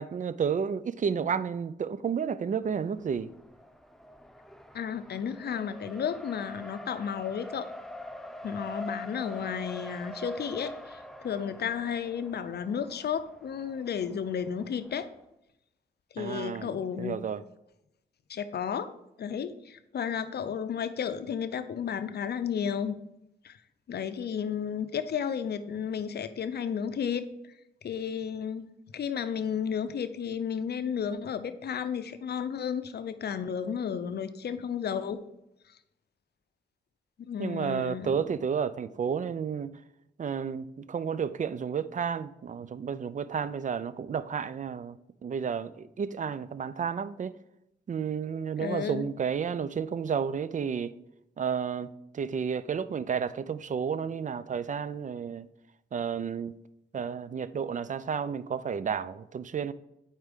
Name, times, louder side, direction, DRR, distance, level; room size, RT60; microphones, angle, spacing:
voice 1, 0.0-3.3 16.2-17.4 37.4-39.7 40.2-45.0 45.2-47.3 47.9-50.9 51.4-55.5 55.9-56.5 56.9-59.7, right 7 dB, 45° right, 0.4 m, -31 dB
Race car auto racing, 2.6-15.2, left 1 dB, ahead, 0.6 m, -45 dB
voice 2, 4.7-7.7 8.4-15.1 16.1-17.2 18.3-18.9 19.2-23.0 23.4-23.6 23.9-27.2 27.8-35.2 37.2-38.2 48.6-49.0, left 7 dB, 60° left, 0.5 m, -33 dB
4.6 x 4.4 x 5.2 m
supercardioid pair, 45°, 19 cm